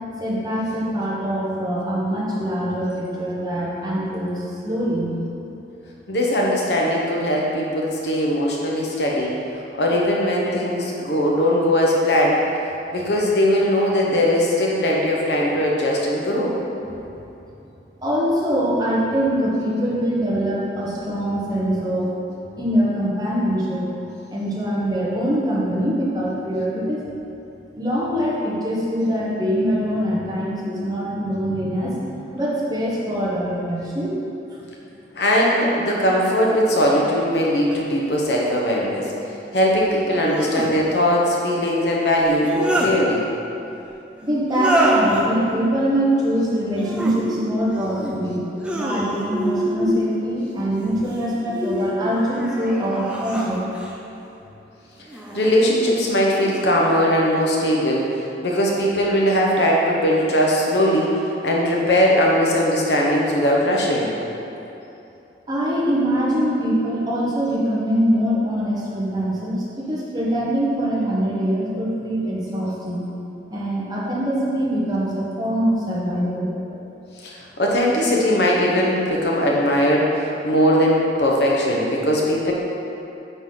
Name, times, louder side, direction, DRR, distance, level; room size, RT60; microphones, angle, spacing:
voice 1, 0.2-5.1 16.8-17.2 18.0-22.1 22.6-23.9 24.3-27.0 27.8-34.2 34.5-34.7 44.2-48.5 48.7-53.6 65.5-73.1 73.5-76.5, equal, 20° right, -6 dB, 1.2 m, -23 dB
voice 2, 6.1-12.4 12.9-16.5 35.1-39.1 39.5-43.3 55.3-64.1 76.7-76.8 77.2-82.5, equal, 70° left, -3 dB, 1.1 m, -20 dB
sound 1, 37.7-37.8 40.1-40.7 42.2-42.9 44.5-45.2 46.7-47.2 47.7-48.2 48.6-49.5 50.7-51.3 52.0-54.0 55.1-55.5 56.1-56.7, right 1 dB, 5° right, 0.6 m, -26 dB
9.0 x 4.1 x 4.0 m, 2.9 s
head